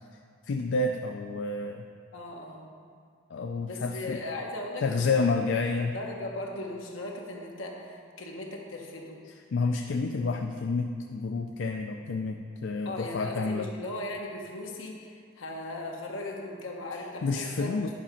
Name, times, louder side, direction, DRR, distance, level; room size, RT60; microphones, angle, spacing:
voice 1, 0.4-1.9 3.3-4.2 4.8-5.9 9.5-13.7 17.2-17.9, left 3 dB, 65° left, 4 dB, 0.4 m, -29 dB
voice 2, 2.1-2.7 3.7-5.3 5.8-9.2 12.8-17.7, left 2 dB, 85° left, 0 dB, 1.3 m, -38 dB
10.0 x 5.0 x 5.7 m, 2.2 s
head